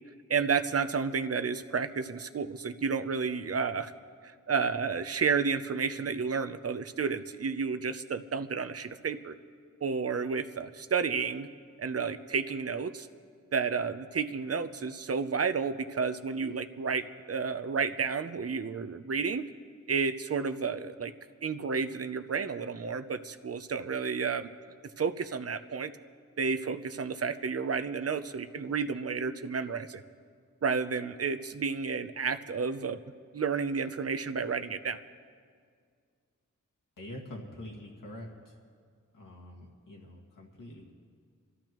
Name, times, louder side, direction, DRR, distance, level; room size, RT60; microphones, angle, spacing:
voice 1, 0.3-3.9 4.5-9.3 9.8-11.5 11.8-13.1 13.5-19.5 19.9-21.1 21.4-24.5 25.0-26.0 26.4-30.0 30.6-33.0 33.3-35.0, right 5 dB, 50° right, 11 dB, 0.6 m, -31 dB
voice 2, 37.0-38.6 39.1-40.9, left 1 dB, 85° left, -2 dB, 2.0 m, -45 dB
28.0 x 13.5 x 3.0 m, 2.1 s
wide cardioid pair, 105°, 31 cm